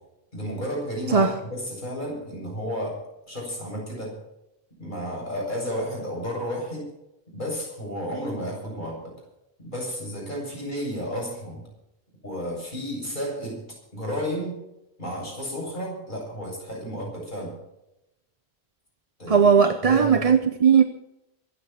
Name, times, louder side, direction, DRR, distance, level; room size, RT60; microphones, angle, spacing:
voice 1, 0.3-4.2 4.8-6.9 7.3-9.1 9.6-11.7 12.2-13.6 13.9-14.6 15.0-17.5 19.2-20.3, equal, 45° left, 7.8 m, -32 dB
voice 2, 19.3-20.8, right 6 dB, 40° right, 0.8 m, -18 dB
23.0 x 9.0 x 5.9 m
omnidirectional pair, 1.1 m